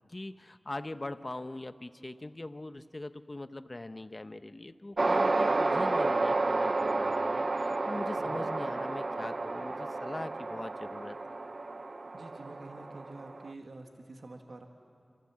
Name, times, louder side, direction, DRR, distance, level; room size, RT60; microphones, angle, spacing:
voice 1, 0.1-11.2, left 2 dB, 40° left, 11 dB, 0.8 m, -41 dB
sound 1, 5.0-13.5, right 2 dB, 60° right, 0.6 m, -31 dB
voice 2, 8.2-8.5 12.1-14.7, right 2 dB, 75° right, 3 dB, 1.6 m, -47 dB
28.0 x 14.5 x 7.4 m, 2.5 s
wide cardioid pair, 45°, 0 cm